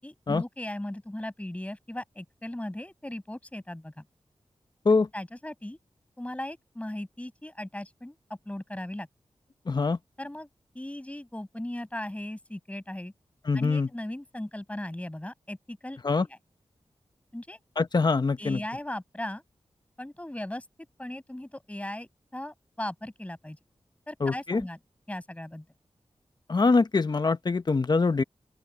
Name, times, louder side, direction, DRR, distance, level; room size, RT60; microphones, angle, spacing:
voice 1, 0.0-4.1 5.1-5.8 6.2-9.1 10.2-10.5 10.7-13.1 13.5-16.4 17.3-17.6 18.4-19.4 20.0-20.7 21.0-23.6 24.1-24.8 25.1-25.7, left 1 dB, 10° left, 7.4 m, -37 dB
voice 2, 9.7-10.0 13.5-13.9 16.0-16.3 17.8-18.6 24.2-24.6 26.5-28.2, left 4 dB, 40° left, 0.9 m, -24 dB
open air
wide cardioid pair, 90°, 11 cm